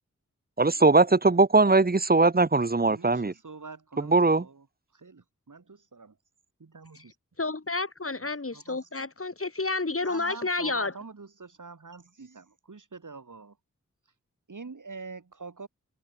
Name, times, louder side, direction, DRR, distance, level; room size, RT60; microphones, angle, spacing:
voice 1, 0.6-3.3 4.0-4.4, right 3 dB, 30° right, 1.1 m, -20 dB
voice 2, 2.8-4.7 4.9-6.2 6.6-7.2 8.5-8.8 10.0-13.6 14.5-15.7, right 4 dB, 75° right, 7.4 m, -45 dB
voice 3, 7.4-11.0, left 3 dB, 45° left, 4.4 m, -30 dB
wide cardioid pair, 65°, 31 cm